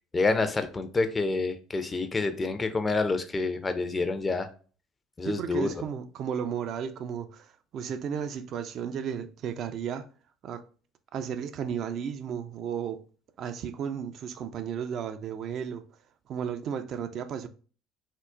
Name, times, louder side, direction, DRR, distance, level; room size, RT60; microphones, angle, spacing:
voice 1, 0.1-4.5 5.2-5.7, left 3 dB, 25° left, 0.4 m, -28 dB
voice 2, 5.2-10.1 10.4-10.6 11.1-13.0 13.4-15.9 16.3-17.5, right 8 dB, 50° right, 0.3 m, -34 dB
3.6 x 2.1 x 2.3 m
hypercardioid pair, 65°, 0 cm